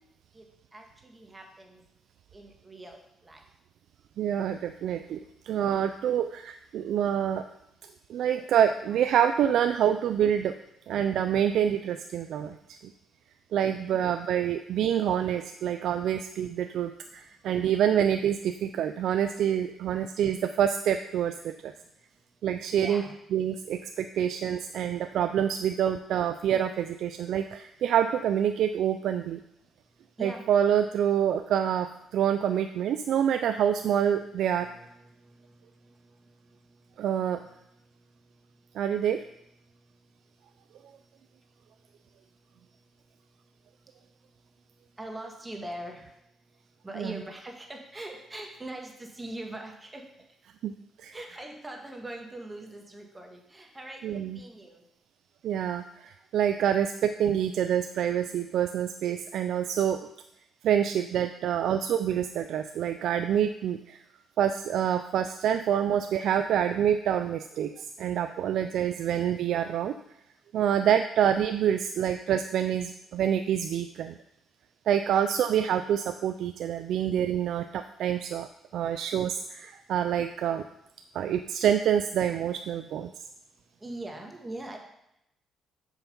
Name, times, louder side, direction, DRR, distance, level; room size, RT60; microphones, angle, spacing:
voice 1, 0.7-1.8 2.3-3.4 22.7-23.1 30.2-30.4 34.6-36.3 45.0-46.1 46.8-50.0 51.1-54.8 83.8-84.8, right 1 dB, 20° right, 2 dB, 1.6 m, -42 dB
voice 2, 4.2-7.5 8.1-10.5 10.9-12.8 13.5-21.7 22.4-23.0 23.3-29.4 30.2-34.7 37.0-37.4 38.7-39.2 47.0-47.2 50.6-50.7 51.0-51.1 54.0-54.4 55.4-60.0 60.6-64.0 64.4-70.0 70.5-74.1 74.9-80.6 81.1-83.1, right 9 dB, 75° right, 8 dB, 0.4 m, -27 dB
7.1 x 5.7 x 5.4 m, 0.81 s
cardioid pair, 90°, 0 cm